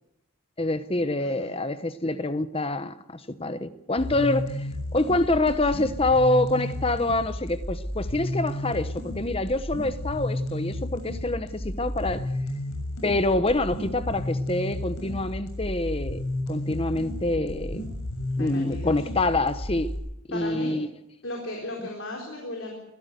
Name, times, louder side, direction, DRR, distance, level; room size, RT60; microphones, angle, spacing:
voice 1, 0.6-12.3 13.0-16.2 16.5-17.8 18.4-19.9 20.3-20.9, left 2 dB, 25° left, 1.0 m, -26 dB
voice 2, 1.2-1.5 5.6-5.7 18.4-19.0 20.3-20.8 21.2-22.7, left 1 dB, 60° left, 4.2 m, -36 dB
sound 1, 4.0-20.0, left 1 dB, 90° left, 7.1 m, -32 dB
22.5 x 15.5 x 8.1 m
head